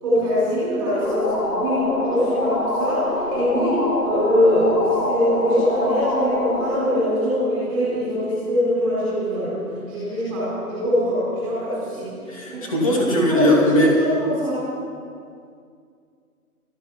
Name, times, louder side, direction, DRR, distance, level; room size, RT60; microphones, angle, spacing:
voice 1, 0.0-3.0 3.3-9.5 9.9-12.1 12.4-12.9 13.3-14.6, left 1 dB, 15° right, -10 dB, 4.5 m, -22 dB
sound 1, 0.8-8.2, left 1 dB, 90° left, 3.3 m, -26 dB
voice 2, 12.3-14.0, left 1 dB, 20° left, -1 dB, 1.9 m, -19 dB
15.0 x 14.0 x 5.7 m, 2.3 s
hypercardioid pair, 180°, 46 cm